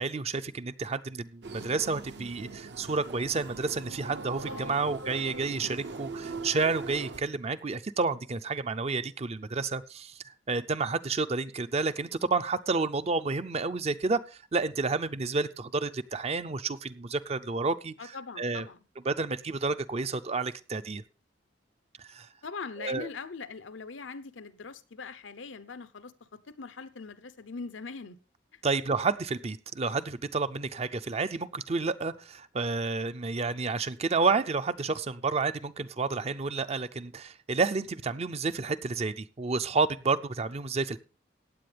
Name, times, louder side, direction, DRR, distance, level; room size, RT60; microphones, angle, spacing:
voice 1, 0.0-10.1 10.5-14.2 14.5-17.9 18.4-18.7 19.1-21.0 22.0-22.3 22.8-23.1 28.6-41.0, right 4 dB, 35° right, 0.5 m, -30 dB
sound 1, 1.4-7.2, right 3 dB, 65° right, 0.9 m, -41 dB
voice 2, 4.5-4.8 18.0-18.8 22.4-28.2 28.5-28.6, left 4 dB, 85° left, 0.8 m, -42 dB
15.5 x 9.3 x 3.4 m
head